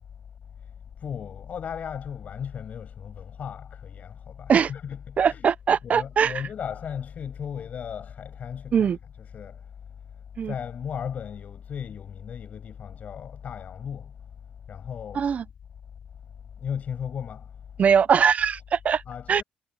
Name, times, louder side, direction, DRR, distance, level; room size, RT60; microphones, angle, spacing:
voice 1, 1.0-5.5 5.8-8.9 9.2-9.6 10.5-14.1 14.7-15.3 16.6-17.4 19.1-19.4, left 8 dB, 50° left, 7.3 m, -36 dB
voice 2, 5.2-6.3 8.7-9.0 10.4-10.5 15.1-15.4 17.8-19.0 19.3-19.4, right 7 dB, 45° right, 0.8 m, -21 dB
supercardioid pair, 80°, 3 cm